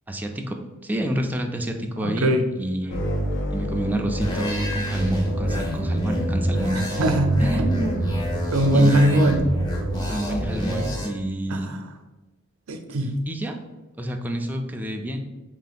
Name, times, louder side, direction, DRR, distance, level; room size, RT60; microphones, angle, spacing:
voice 1, 0.1-2.3 2.6-3.0 3.5-7.0 7.4-7.6 8.7-9.2 10.1-11.7 13.3-13.6 14.0-15.2, right 1 dB, 10° right, 3 dB, 0.4 m, -28 dB
voice 2, 2.0-2.4 6.7-8.0 8.5-9.4 11.5-11.8 12.7-13.2, right 1 dB, 85° right, 6 dB, 0.6 m, -21 dB
sound 1, 2.9-11.1, equal, 55° left, 0.6 m, -29 dB
sound 2, 4.2-11.1, right 1 dB, 20° left, 0.8 m, -28 dB
3.7 x 2.7 x 4.0 m, 1.1 s
head